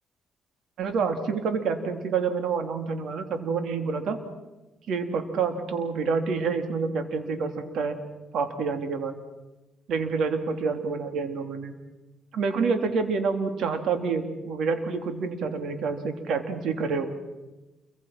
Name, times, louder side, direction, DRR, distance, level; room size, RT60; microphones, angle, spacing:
voice 1, 0.8-4.2 4.9-8.0 8.3-9.2 9.9-11.7 12.3-17.1, right 5 dB, 70° right, 7 dB, 3.1 m, -28 dB
28.5 x 23.5 x 6.0 m, 1.1 s
cardioid pair, 90°, 0 cm